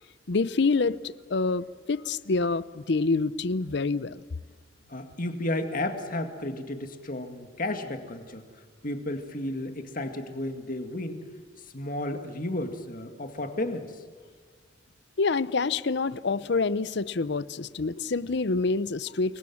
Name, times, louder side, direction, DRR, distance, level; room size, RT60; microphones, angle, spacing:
voice 1, 0.3-4.2 15.2-19.4, left 3 dB, 65° left, 17 dB, 0.7 m, -27 dB
voice 2, 4.9-8.4 8.8-11.3 11.6-14.0, left 1 dB, 45° left, 6 dB, 2.1 m, -33 dB
28.5 x 22.5 x 7.3 m, 1.5 s
head